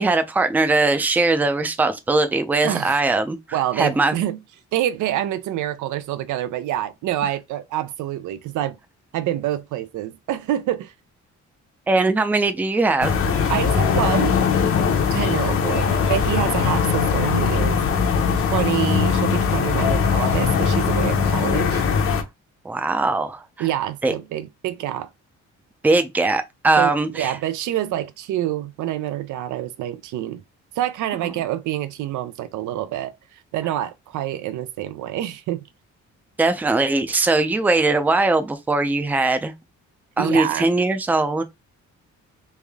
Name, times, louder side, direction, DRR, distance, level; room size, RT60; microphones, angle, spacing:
voice 1, 0.0-3.4 3.8-4.2 11.9-13.2 22.6-23.4 24.0-24.1 25.8-27.4 36.4-39.5 40.2-41.4, right 3 dB, 5° right, 0.4 m, -20 dB
voice 2, 2.6-3.0 3.5-4.4 4.7-8.8 9.1-10.9 13.5-14.4 15.1-18.0 18.5-21.8 23.6-25.1 26.8-30.4 30.8-35.6 40.2-40.7, right 13 dB, 90° right, 0.5 m, -27 dB
sound 1, 13.0-22.2, left 6 dB, 50° left, 0.7 m, -20 dB
3.3 x 2.6 x 3.5 m
cardioid pair, 140°, 29 cm